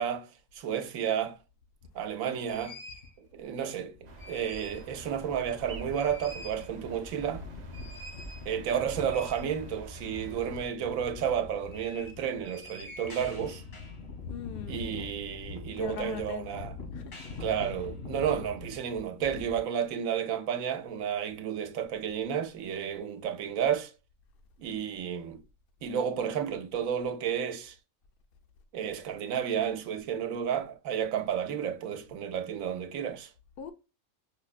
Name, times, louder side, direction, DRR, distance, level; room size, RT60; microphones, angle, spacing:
voice 1, 0.0-1.4 1.9-2.8 3.2-7.4 8.5-13.6 14.7-16.7 17.4-23.9 24.6-25.4 25.8-27.8 28.7-33.3, right 8 dB, 85° right, 1.1 m, -32 dB
sound 1, 1.8-1.9 2.4-3.1 3.9-4.9 5.3-5.4 5.7-19.6, left 3 dB, 80° left, 1.9 m, -43 dB
sound 2, 4.0-10.7, right 3 dB, 45° right, 0.5 m, -47 dB
voice 2, 14.3-14.9 15.8-16.5 16.9-17.1 33.6-33.7, left 9 dB, 60° left, 0.6 m, -40 dB
5.2 x 2.1 x 2.4 m
omnidirectional pair, 1.4 m